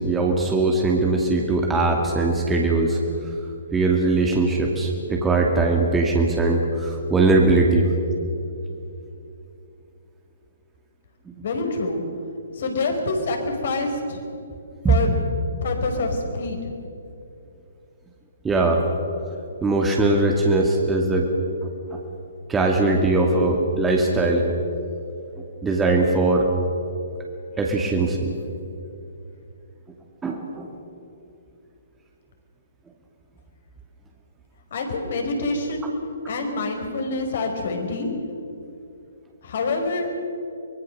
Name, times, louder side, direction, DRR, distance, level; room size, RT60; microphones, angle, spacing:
voice 1, 0.0-3.0 3.7-7.9 14.8-14.9 18.4-18.8 19.6-21.3 21.9-22.0 22.5-24.5 25.6-26.5 27.6-28.3 30.2-30.7, right 2 dB, 10° right, 0 dB, 2.4 m, -20 dB
voice 2, 11.4-12.0 12.5-14.2 14.9-15.1 15.6-16.7 34.7-35.9 36.3-38.1 39.4-40.1, left 3 dB, 55° left, 3 dB, 5.0 m, -26 dB
24.5 x 21.5 x 6.7 m, 2.8 s
figure-of-eight pair, 130°, 0 cm